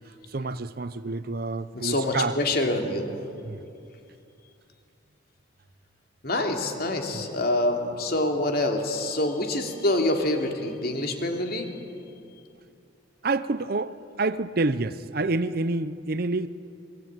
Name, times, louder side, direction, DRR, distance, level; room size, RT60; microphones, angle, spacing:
voice 1, 0.3-2.4 3.4-3.6 7.1-7.2 13.2-16.5, right 3 dB, 50° right, 0.6 m, -28 dB
voice 2, 1.7-3.1 6.2-11.7, left 1 dB, 50° left, 2.9 m, -26 dB
28.0 x 21.0 x 8.9 m
head